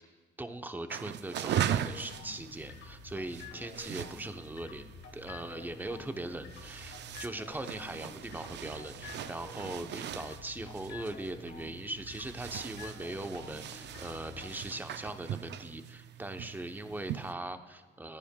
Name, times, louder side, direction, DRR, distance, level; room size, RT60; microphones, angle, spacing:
voice 1, 0.4-4.9 5.1-18.2, right 2 dB, 10° right, 8 dB, 0.7 m, -40 dB
sound 1, 0.9-17.3, right 10 dB, 60° right, 0.5 m, -40 dB
sound 2, 1.5-14.6, left 7 dB, 80° left, 1.6 m, -50 dB
19.5 x 10.0 x 2.2 m, 1.5 s
cardioid pair, 90°, 20 cm